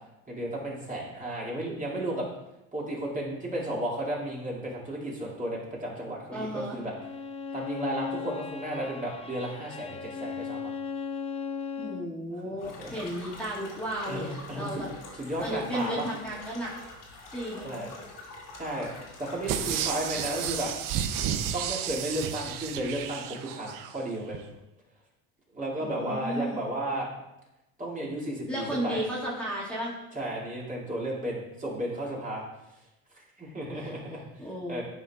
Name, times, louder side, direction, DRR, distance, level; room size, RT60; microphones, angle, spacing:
voice 1, 0.3-2.3 2.7-6.9 7.5-10.7 12.4-13.0 14.1-14.9 15.2-16.1 17.6-17.9 18.6-18.9 19.2-20.7 21.5-24.4 25.5-27.1 27.8-29.0 30.1-32.4 33.1-34.8, right 1 dB, 20° right, -4 dB, 2.2 m, -33 dB
voice 2, 6.3-6.8 11.8-14.9 15.4-16.7 17.3-17.8 25.8-26.6 28.5-29.9 33.7-34.0 34.4-34.8, right 1 dB, 5° left, -8 dB, 1.9 m, -34 dB
Bowed string instrument, 6.8-12.1, left 6 dB, 20° left, 0.3 m, -37 dB
sound 1, 12.6-20.6, left 2 dB, 65° left, 2.5 m, -46 dB
sound 2, 19.5-23.9 24.3-24.4, right 9 dB, 60° right, 0.7 m, -32 dB
11.5 x 4.6 x 2.3 m, 0.94 s
hypercardioid pair, 75°, 37 cm